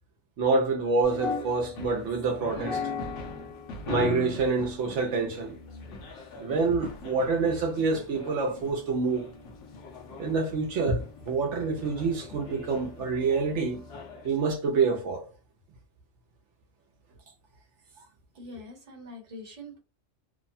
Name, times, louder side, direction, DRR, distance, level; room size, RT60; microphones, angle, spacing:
voice 1, 0.4-2.9 3.9-5.6 6.4-9.2 10.2-13.9 14.2-15.3, right 4 dB, 75° right, 0.9 m, -27 dB
sound 1, 1.0-14.3, left 4 dB, 80° left, 1.0 m, -39 dB
voice 2, 18.3-19.8, left 1 dB, 35° right, 1.0 m, -44 dB
2.9 x 2.1 x 2.6 m
omnidirectional pair, 1.2 m